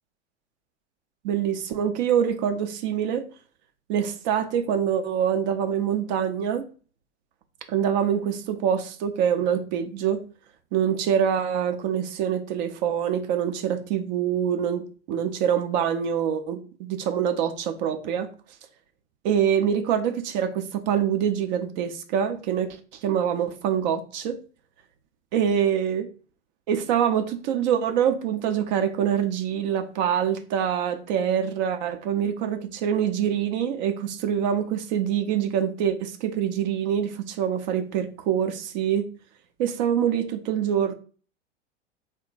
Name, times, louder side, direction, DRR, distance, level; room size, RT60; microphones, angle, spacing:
voice 1, 1.2-3.3 3.9-6.6 7.7-10.2 10.7-18.3 19.2-24.4 25.3-26.1 26.7-39.1 39.6-40.9, right 8 dB, 40° right, 0.5 m, -25 dB
3.5 x 2.2 x 3.9 m
figure-of-eight pair, 95°, 35 cm